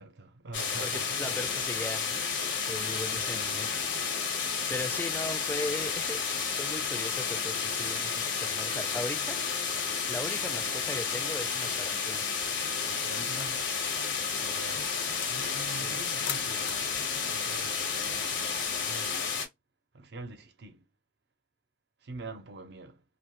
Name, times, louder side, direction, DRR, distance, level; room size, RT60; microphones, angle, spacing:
voice 1, 0.0-1.1 3.1-3.6 10.5-10.6 12.8-13.7 14.4-15.0 15.3-19.4 19.9-20.8 22.0-23.0, right 2 dB, 65° right, 0.5 m, -45 dB
sound 1, 0.5-19.5, left 5 dB, 85° left, 0.8 m, -31 dB
voice 2, 0.8-2.2 2.7-3.7 4.7-6.2 6.6-9.4 10.1-12.3 15.8-15.9, left 1 dB, 10° left, 0.3 m, -38 dB
sound 2, 13.3-18.8, left 9 dB, 70° left, 0.5 m, -46 dB
2.1 x 2.0 x 2.9 m
head